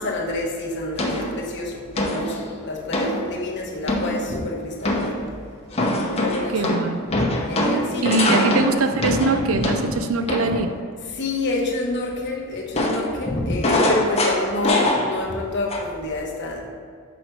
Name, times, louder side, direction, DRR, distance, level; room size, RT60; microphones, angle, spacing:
voice 1, 0.0-5.3 6.1-6.6 7.5-8.8 11.1-16.7, left 2 dB, 55° left, -1 dB, 1.2 m, -28 dB
sound 1, 1.0-1.4 2.0-2.4 2.9-3.2 3.9-4.4 4.8-5.2 5.7-10.7 12.7-15.4 15.7-16.1, left 1 dB, 30° left, 0.9 m, -23 dB
voice 2, 6.5-7.0 8.0-10.7, right 3 dB, 70° right, 8 dB, 0.5 m, -22 dB
6.2 x 5.0 x 4.6 m, 2.2 s
head